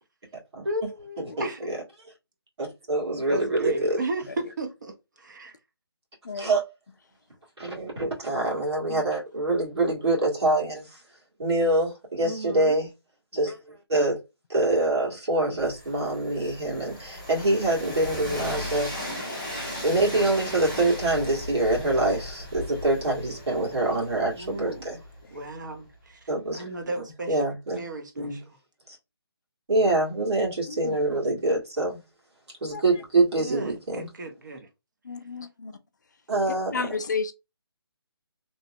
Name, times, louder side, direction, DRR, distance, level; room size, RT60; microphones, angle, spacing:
voice 1, 0.6-1.7 3.3-5.5 12.2-12.8 24.3-25.0 25.3-26.2 26.5-27.5 27.7-28.6 33.4-34.7, right 2 dB, 45° right, 0.7 m, -34 dB
voice 2, 1.2-1.8 2.6-4.0 6.3-6.6 7.6-11.0 11.4-12.9 13.3-14.2 14.5-18.9 19.8-25.0 26.3-26.7 27.3-27.8 28.2-28.4 28.9-29.0 29.7-32.0 32.6-34.1 36.3-36.9, right 2 dB, 80° right, 1.7 m, -25 dB
voice 3, 6.2-6.6 8.9-9.0 30.7-31.0 32.7-32.8 35.0-35.7 36.7-37.3, left 4 dB, 45° left, 0.4 m, -32 dB
Train, 15.6-25.4, left 1 dB, 15° right, 1.0 m, -37 dB
2.9 x 2.0 x 2.7 m
hypercardioid pair, 175°, 14 cm